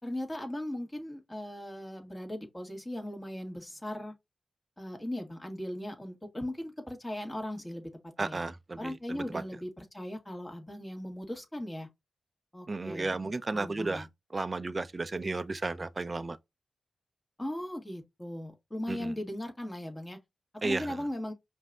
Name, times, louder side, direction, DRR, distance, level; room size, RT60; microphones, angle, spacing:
voice 1, 0.0-4.1 4.8-7.9 8.2-8.4 8.8-11.9 12.5-13.1 13.5-14.1 17.4-20.2 20.5-21.3, left 1 dB, 20° left, 1.8 m, -38 dB
voice 2, 8.2-9.4 12.7-14.1 14.3-16.4 18.9-19.1 20.6-21.0, right 3 dB, 40° right, 0.5 m, -33 dB
5.2 x 2.6 x 3.5 m
cardioid pair, 50°, 0 cm